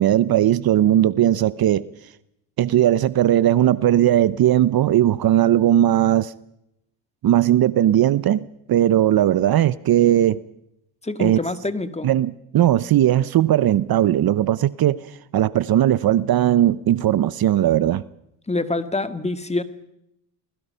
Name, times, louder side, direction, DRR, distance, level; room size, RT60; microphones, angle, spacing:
voice 1, 0.0-1.9 2.6-6.3 7.2-10.4 11.2-11.4 12.0-15.1 15.3-18.0, right 12 dB, 50° right, 0.9 m, -18 dB
voice 2, 11.0-12.1 18.5-19.6, left 2 dB, 15° left, 1.9 m, -26 dB
28.5 x 21.0 x 5.7 m
supercardioid pair, 80°, 47 cm